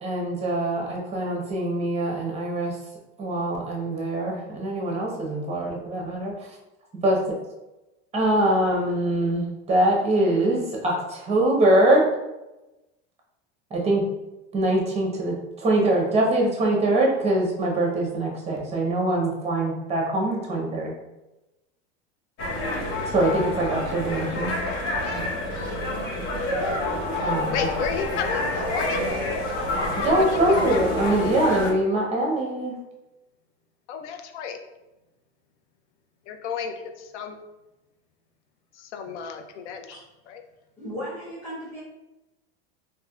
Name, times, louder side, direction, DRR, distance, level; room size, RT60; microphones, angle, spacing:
voice 1, 0.0-2.8 3.2-6.3 7.0-7.2 8.1-12.0 13.7-14.0 14.5-20.9 23.1-24.5 27.2-27.7 30.0-32.7, right 1 dB, 20° right, -1 dB, 0.9 m, -23 dB
sound 1, 22.4-31.7, left 2 dB, 45° left, 0.9 m, -28 dB
voice 2, 27.5-29.1 30.2-30.8 33.9-34.6 36.3-37.4 38.7-40.0 40.3-40.4, left 7 dB, 85° left, 6 dB, 0.5 m, -32 dB
voice 3, 40.8-41.8, equal, 5° left, -11 dB, 1.2 m, -35 dB
3.3 x 2.7 x 2.3 m, 1.0 s
supercardioid pair, 120°, 34 cm